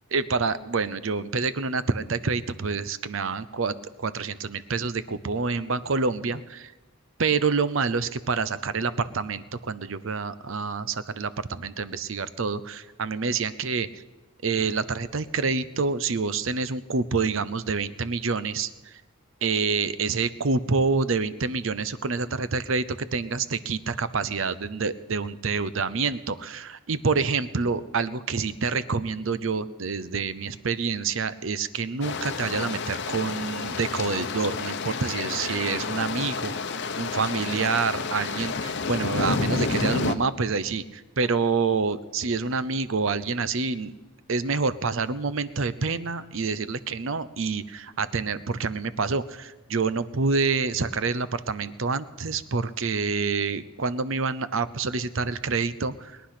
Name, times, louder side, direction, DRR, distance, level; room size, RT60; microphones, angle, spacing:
voice 1, 0.1-6.7 7.2-13.9 14.4-18.7 19.4-36.5 37.0-43.9 44.3-56.2, right 4 dB, 65° right, 15 dB, 0.7 m, -27 dB
sound 1, 32.0-40.1, left 4 dB, 55° left, 0.8 m, -30 dB
21.5 x 10.0 x 5.9 m, 1.2 s
head